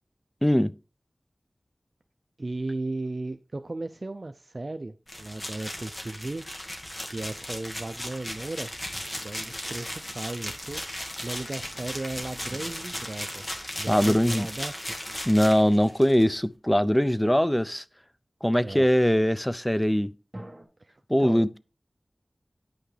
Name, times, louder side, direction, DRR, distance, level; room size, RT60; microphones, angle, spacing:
voice 1, 0.4-0.7 13.9-14.5 15.3-17.8 18.4-20.1 21.1-21.6, equal, 10° left, 0.4 m, -22 dB
voice 2, 2.4-6.5 7.0-8.7 9.2-15.0 18.6-18.9 20.8-21.6, right 2 dB, 50° right, 0.4 m, -36 dB
sound 1, 5.1-16.2, left 1 dB, 35° left, 1.7 m, -36 dB
sound 2, 12.5-15.4 20.3-20.7, right 1 dB, 10° right, 2.0 m, -48 dB
9.8 x 5.8 x 3.3 m
wide cardioid pair, 60°, 0 cm